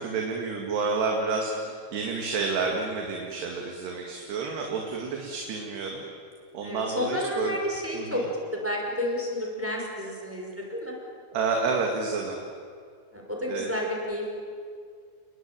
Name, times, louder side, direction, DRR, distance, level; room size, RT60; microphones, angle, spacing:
voice 1, 0.0-6.0 6.5-7.6 7.9-8.3 11.3-12.4 13.5-13.7, right 4 dB, 70° right, 1 dB, 4.2 m, -29 dB
voice 2, 6.6-8.3 8.5-11.0 13.1-14.3, left 1 dB, 5° right, -1 dB, 5.2 m, -31 dB
30.0 x 21.5 x 9.0 m, 2.2 s
omnidirectional pair, 5.0 m